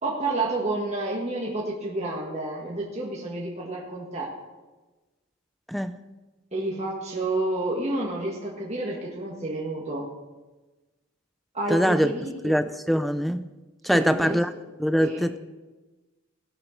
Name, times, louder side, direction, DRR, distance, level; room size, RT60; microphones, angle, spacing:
voice 1, 0.0-4.3 6.5-10.1 11.5-12.5 13.9-14.4 15.0-15.3, right 2 dB, 30° right, -3 dB, 1.6 m, -30 dB
voice 2, 5.7-6.0 11.7-12.1 12.4-13.5 13.8-14.5 14.8-15.4, equal, ahead, 12 dB, 0.3 m, -23 dB
17.5 x 7.4 x 5.2 m, 1.2 s
head